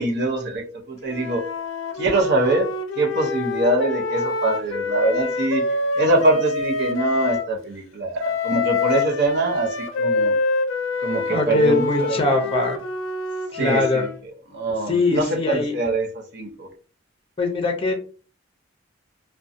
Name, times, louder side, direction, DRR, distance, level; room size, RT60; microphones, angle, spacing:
voice 1, 0.0-1.4 2.0-2.7 3.0-5.7 6.0-10.3 11.0-12.4 13.6-14.1 14.5-16.7, right 2 dB, 60° right, 1 dB, 0.7 m, -23 dB
Wind instrument woodwind instrument, 1.1-7.5 8.2-14.2, left 3 dB, 80° left, 0.4 m, -26 dB
voice 2, 11.3-12.8 13.5-14.1 14.9-15.8 17.4-17.9, left 2 dB, 30° left, 4 dB, 0.5 m, -22 dB
2.6 x 2.2 x 2.5 m, 0.37 s
head